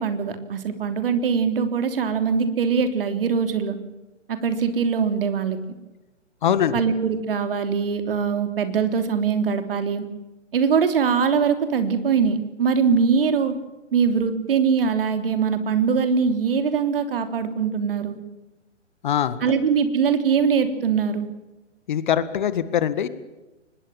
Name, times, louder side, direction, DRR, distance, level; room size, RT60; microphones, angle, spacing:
voice 1, 0.0-3.8 4.3-5.6 6.7-10.0 10.5-13.5 13.9-18.2 19.4-21.3, right 6 dB, 50° right, 8 dB, 3.4 m, -22 dB
voice 2, 6.4-6.8 19.0-19.4 21.9-23.1, left 9 dB, 40° left, 14 dB, 1.8 m, -22 dB
24.0 x 21.0 x 7.2 m, 1.0 s
figure-of-eight pair, 135°, 36 cm